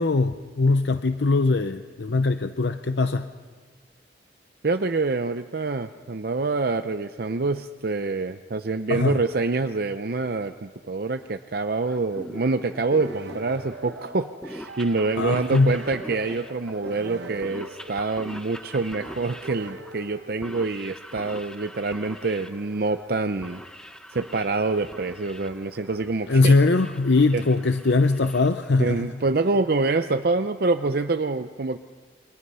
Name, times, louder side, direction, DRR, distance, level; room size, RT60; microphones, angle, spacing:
voice 1, 0.0-3.3 8.9-9.2 15.2-15.8 26.3-29.1, left 3 dB, 70° left, 9 dB, 0.7 m, -21 dB
voice 2, 4.6-23.6 24.1-26.5 27.3-27.4 28.8-31.8, right 3 dB, 55° right, 8 dB, 0.6 m, -26 dB
sound 1, 11.8-29.2, equal, 5° left, 0.9 m, -43 dB
sound 2, 13.0-20.7, right 3 dB, 75° right, 1.1 m, -42 dB
28.5 x 24.0 x 5.6 m, 1.5 s
head